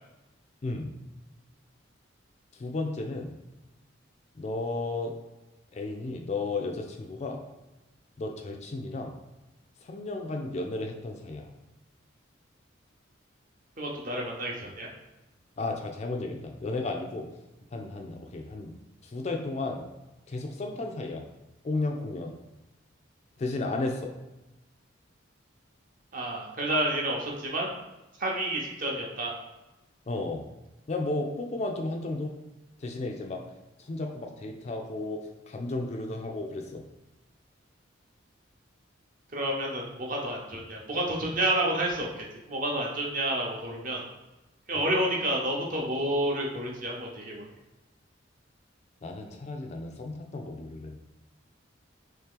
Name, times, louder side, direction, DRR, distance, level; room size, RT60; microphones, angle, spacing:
voice 1, 2.5-3.3 4.3-5.1 5.7-7.4 8.2-9.1 9.8-11.5 15.6-17.3 17.7-18.7 19.0-19.8 20.3-21.2 21.6-22.3 23.4-24.1 30.1-30.4 30.9-32.3 32.8-33.4 33.8-36.8 44.7-44.9 49.0-50.9, left 2 dB, 35° left, 3 dB, 0.3 m, -33 dB
voice 2, 13.8-14.9 26.1-27.7 28.2-29.3 39.3-44.0 44.7-47.5, right 1 dB, 40° right, -1 dB, 0.7 m, -30 dB
3.1 x 2.9 x 3.6 m, 1.0 s
head